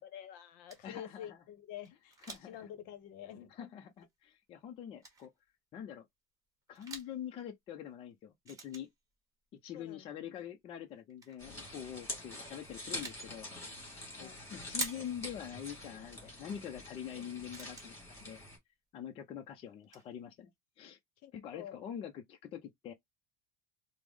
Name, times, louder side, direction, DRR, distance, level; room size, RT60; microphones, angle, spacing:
voice 1, 0.0-2.2 2.4-3.8 9.7-10.0 14.2-14.4 21.2-21.8, left 11 dB, 55° left, 0.8 m, -48 dB
sound 1, 0.7-0.9 1.8-2.6 2.9-3.0 4.0-4.1 5.0-5.3 6.7-7.2 8.5-9.1 10.9-11.4 12.4-13.3 14.8-15.3 16.5-16.6 17.1-17.2 17.5-18.5 19.5-19.6 19.8-20.1, right 3 dB, 20° right, 1.3 m, -46 dB
voice 2, 0.8-1.4 2.2-2.7 3.5-5.3 5.7-6.1 6.7-8.9 9.6-13.7 14.2-18.0 18.2-18.4 18.9-20.5 20.8-21.0 21.3-22.9, left 9 dB, 30° left, 0.5 m, -45 dB
sound 2, 11.4-18.6, left 1 dB, 15° left, 2.3 m, -45 dB
4.7 x 2.0 x 3.5 m
cardioid pair, 155°, 17 cm